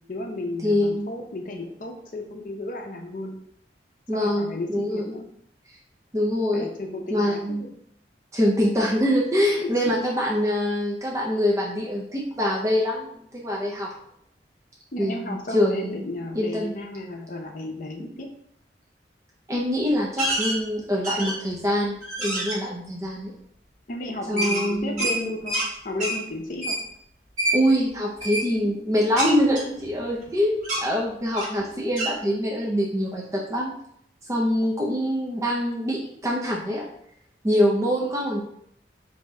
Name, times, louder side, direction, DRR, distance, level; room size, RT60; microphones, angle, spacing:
voice 1, 0.1-3.4 4.1-5.2 6.5-7.7 9.6-9.7 14.9-18.3 23.9-25.6 25.8-26.8, left 2 dB, 45° left, 2 dB, 0.6 m, -33 dB
voice 2, 0.6-1.1 4.1-5.1 6.1-6.7 7.1-7.7 8.3-13.9 15.0-16.1 16.3-16.7 19.5-23.3 24.3-25.1 27.5-33.7 34.3-36.9 37.4-38.4, equal, 20° right, -3 dB, 0.5 m, -24 dB
sound 1, 20.2-20.6 21.0-21.5 22.0-22.6 24.4-25.7 26.0-26.2 26.6-26.8 27.4-27.6 28.2-28.5 29.2-30.3 30.6-30.8 31.3-31.6 32.0-32.1, right 1 dB, 40° right, 1.5 m, -27 dB
3.5 x 2.7 x 4.2 m, 0.70 s
head